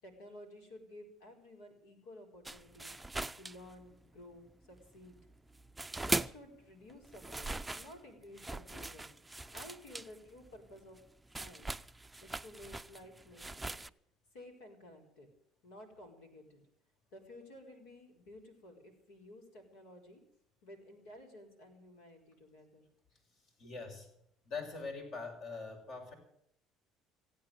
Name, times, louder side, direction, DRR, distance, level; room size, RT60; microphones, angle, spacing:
voice 1, 0.0-2.9 3.4-5.2 6.0-9.1 9.5-11.0 11.4-11.7 12.2-13.8 14.3-15.3 15.6-16.6 17.1-20.2 20.6-22.8, left 1 dB, 85° left, 2 dB, 4.6 m, -54 dB
sound 1, 2.4-4.2 4.5-6.6 6.9-13.9, right 2 dB, 10° right, 0.5 m, -41 dB
voice 2, 23.6-24.1 24.4-26.1, left 4 dB, 65° left, 3 dB, 6.1 m, -43 dB
16.5 x 8.8 x 9.5 m, 0.74 s
supercardioid pair, 75°, 0 cm